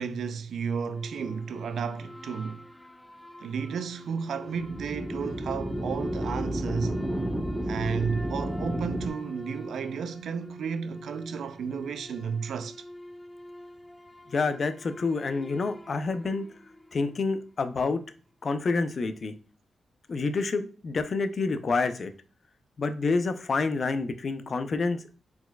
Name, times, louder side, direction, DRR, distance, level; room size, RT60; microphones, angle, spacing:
voice 1, 0.0-2.6 3.4-7.0 7.6-12.8, right 6 dB, 80° right, 0.3 m, -33 dB
sound 1, 0.8-17.4, left 1 dB, 15° left, 0.8 m, -43 dB
sound 2, 4.5-9.1, right 1 dB, 15° right, 0.8 m, -32 dB
voice 2, 14.3-16.5 16.9-18.0 18.4-19.3 20.1-22.1 22.8-25.1, left 4 dB, 60° left, 0.5 m, -28 dB
4.4 x 4.1 x 2.3 m
supercardioid pair, 45°, 0 cm